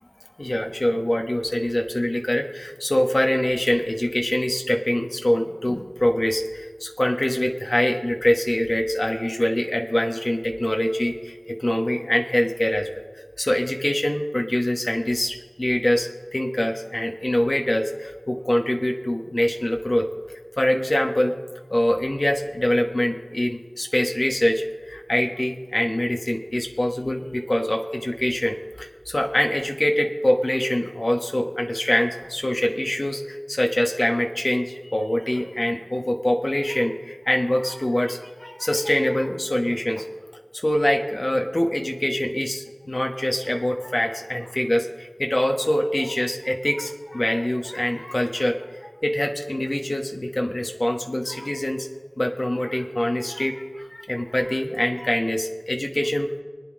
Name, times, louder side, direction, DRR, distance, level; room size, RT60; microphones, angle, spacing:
voice 1, 0.4-20.1 20.6-21.3 21.7-40.0 40.5-51.9 52.2-56.4, left 1 dB, 50° left, 2 dB, 1.2 m, -24 dB
25.5 x 9.3 x 3.8 m, 1.5 s
wide cardioid pair, 40°, 0 cm